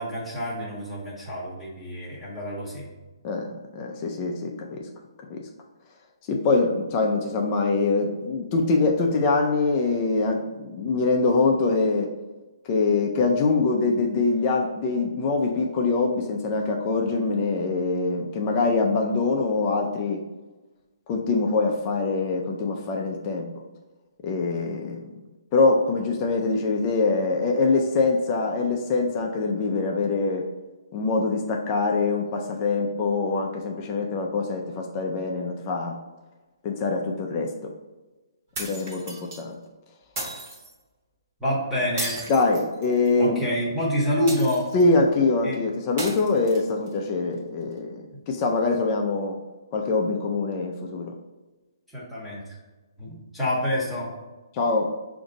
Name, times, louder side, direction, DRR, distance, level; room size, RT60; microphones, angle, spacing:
voice 1, 0.0-2.9 41.4-42.2 43.2-44.7 45.4-45.6 51.9-52.4 53.0-54.1, equal, ahead, -8 dB, 0.8 m, -27 dB
voice 2, 3.2-4.8 5.3-5.5 6.3-12.1 12.7-20.2 21.1-23.5 24.2-25.1 25.5-30.5 30.9-36.0 36.6-37.7 38.6-39.6 42.3-43.5 44.7-49.4 49.7-51.1 54.5-54.9, left 3 dB, 20° left, 1 dB, 0.3 m, -24 dB
sound 1, 38.5-39.4 40.2-40.7 42.0-43.2 44.3-44.9 46.0-46.9, right 2 dB, 35° right, 1.0 m, -35 dB
5.0 x 2.6 x 3.8 m, 1.2 s
hypercardioid pair, 175°, 2 cm